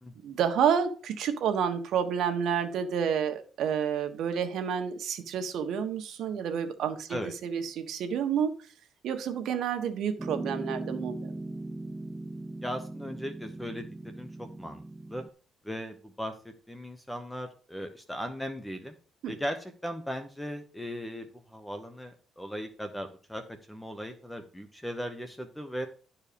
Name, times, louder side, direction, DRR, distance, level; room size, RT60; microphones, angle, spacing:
voice 1, 0.2-8.6 9.0-11.3 19.2-19.3, right 7 dB, 70° right, 6 dB, 1.4 m, -29 dB
Piano, 10.2-15.3, right 2 dB, 10° right, 0.4 m, -39 dB
voice 2, 12.6-14.8 15.1-15.2 15.6-19.0 19.3-25.9, equal, 5° left, 7 dB, 1.0 m, -38 dB
11.5 x 4.7 x 5.2 m, 0.39 s
cardioid pair, 125°, 0 cm